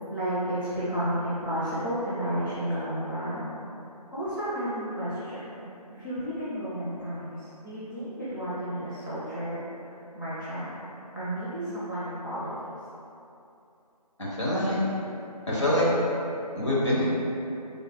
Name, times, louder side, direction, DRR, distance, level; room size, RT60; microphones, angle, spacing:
voice 1, 0.1-3.5 4.1-5.6 5.9-10.7 11.1-12.5, equal, 30° left, -13 dB, 0.5 m, -32 dB
voice 2, 14.2-14.8 15.5-15.9 16.5-17.0, left 1 dB, 45° left, -7 dB, 0.9 m, -25 dB
4.1 x 3.4 x 2.2 m, 2.8 s
figure-of-eight pair, 165°, 21 cm